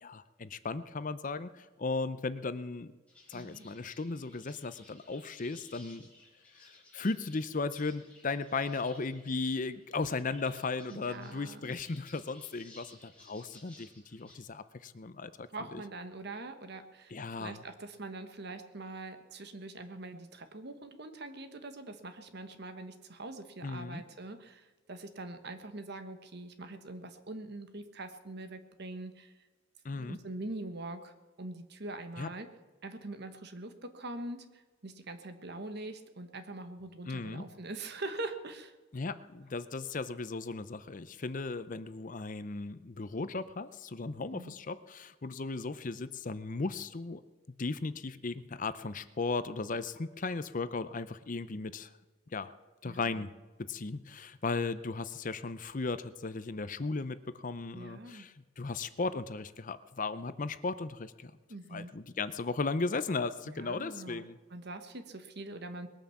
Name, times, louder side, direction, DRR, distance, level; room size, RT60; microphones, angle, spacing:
voice 1, 0.0-2.9 3.3-6.1 6.6-15.8 17.1-17.6 23.6-24.0 29.8-30.2 32.2-32.3 37.1-37.4 38.9-47.2 47.6-51.9 52.3-52.5 52.8-53.3 53.6-61.3 61.7-64.4, left 3 dB, 40° left, 13 dB, 0.6 m, -36 dB
sound 1, 3.1-14.4, left 2 dB, 5° left, 3.9 m, -58 dB
voice 2, 3.3-3.7 10.9-11.7 15.5-29.3 29.9-32.5 32.8-38.7 44.3-44.5 52.8-53.3 57.7-58.3 61.5-61.9 63.5-65.9, right 2 dB, 55° right, 8 dB, 1.4 m, -43 dB
20.5 x 9.0 x 7.2 m, 1.2 s
head